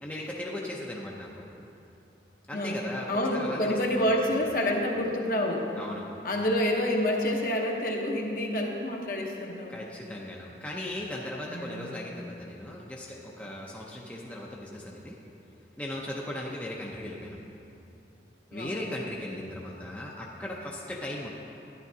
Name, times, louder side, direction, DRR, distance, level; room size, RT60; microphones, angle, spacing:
voice 1, 0.0-1.4 2.5-4.2 5.8-6.0 9.7-15.2 15.8-17.4 18.5-21.3, left 1 dB, 10° left, -3 dB, 0.6 m, -37 dB
voice 2, 2.5-5.7 6.2-9.8 11.5-11.9 18.5-18.9, left 1 dB, 50° left, 0 dB, 0.9 m, -28 dB
11.5 x 9.9 x 2.7 m, 2.8 s
head